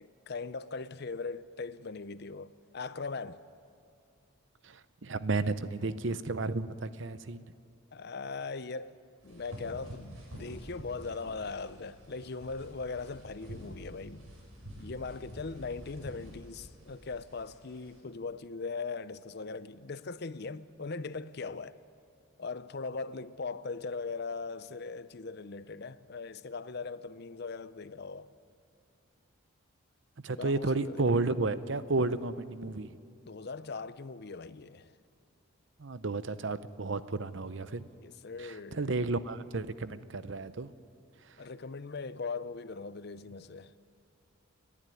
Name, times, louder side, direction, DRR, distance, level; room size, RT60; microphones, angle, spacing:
voice 1, 0.0-3.4 7.9-9.0 9.2-14.3 14.8-21.8 22.4-28.3 30.4-31.0 33.3-34.9 38.0-38.8 41.4-43.7, left 4 dB, 50° left, 0.6 m, -40 dB
voice 2, 4.6-7.5 30.2-32.9 35.8-37.9 38.4-40.7, right 3 dB, 55° right, 0.7 m, -32 dB
sound 1, 9.2-18.0, equal, 90° right, 6.7 m, -48 dB
29.5 x 11.0 x 9.8 m
head